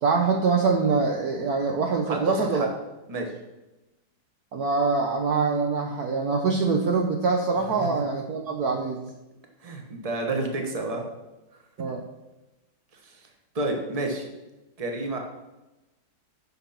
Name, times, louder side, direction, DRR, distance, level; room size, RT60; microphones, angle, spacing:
voice 1, 0.0-2.7 4.5-9.1 11.8-12.0, right 4 dB, 60° right, 2 dB, 1.1 m, -24 dB
voice 2, 2.1-2.7 3.1-3.3 7.8-7.9 9.6-11.1 13.0-13.3 13.5-14.2 14.8-15.2, right 2 dB, 20° right, 3 dB, 1.2 m, -30 dB
9.1 x 6.2 x 5.8 m, 1.0 s
omnidirectional pair, 2.1 m